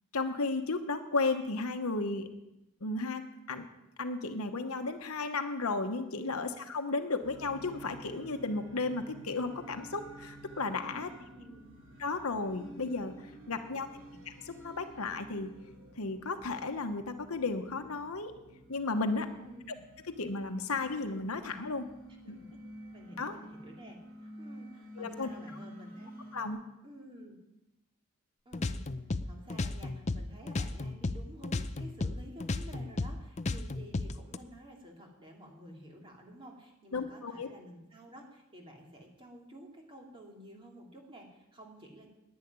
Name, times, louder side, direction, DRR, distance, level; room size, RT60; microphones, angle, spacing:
voice 1, 0.1-2.3 2.8-3.2 3.5-3.7 4.0-11.1 12.0-13.9 14.2-15.5 16.0-18.3 18.7-19.3 19.7-19.8 20.0-21.9 22.3-22.4 23.2-23.3 25.0-25.3 26.3-26.6 36.9-37.5, left 3 dB, 80° left, 7 dB, 1.1 m, -34 dB
sound 1, 7.2-26.5, right 1 dB, 55° right, 2.9 m, -51 dB
voice 2, 11.0-11.7 14.1-14.2 19.2-19.8 22.3-22.5 22.9-26.1 26.8-27.4 28.4-28.8 29.2-42.1, equal, 25° right, 0 dB, 2.9 m, -51 dB
sound 2, 28.5-31.2 31.4-34.4, left 3 dB, 30° left, 0.5 m, -34 dB
10.5 x 9.9 x 9.5 m, 0.93 s
head